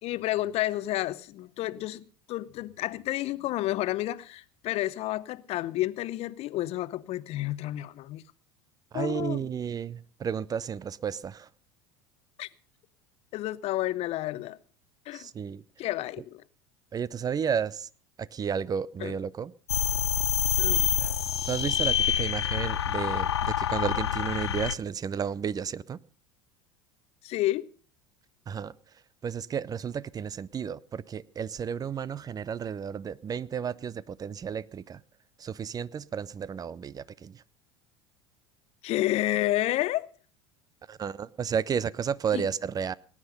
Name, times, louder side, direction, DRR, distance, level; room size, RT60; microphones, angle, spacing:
voice 1, 0.0-8.2 8.9-9.4 12.4-12.5 13.3-14.6 15.1-15.3 15.8-16.4 19.0-19.2 20.6-20.9 27.2-27.7 38.8-40.1 42.3-42.5, left 16 dB, 50° left, 0.8 m, -30 dB
voice 2, 8.9-11.5 15.1-15.6 16.9-17.9 18.2-19.5 21.0-26.0 28.5-28.7 29.2-35.0 35.4-37.4 40.9-42.9, right 7 dB, 30° right, 0.6 m, -32 dB
sound 1, 19.7-24.7, left 9 dB, 90° left, 0.6 m, -27 dB
18.5 x 9.8 x 5.4 m
hypercardioid pair, 80°, 13 cm